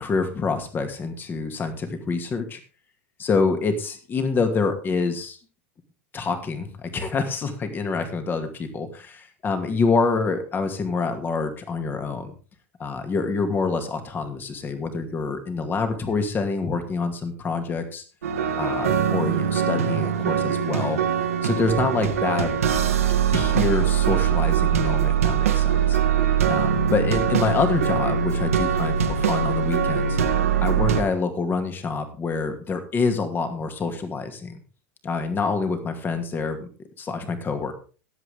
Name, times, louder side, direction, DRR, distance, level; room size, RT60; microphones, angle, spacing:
voice 1, 0.0-2.6 3.2-5.4 6.1-12.3 12.8-18.0 18.6-21.0 21.4-22.5 23.3-26.0 26.5-30.2 30.6-34.6 35.0-36.7 37.0-37.7, left 4 dB, 25° left, 7 dB, 2.4 m, -26 dB
sound 1, 18.2-31.0, right 8 dB, 80° right, 2.0 m, -22 dB
18.0 x 8.1 x 3.7 m, 0.36 s
hypercardioid pair, 90°, 8 cm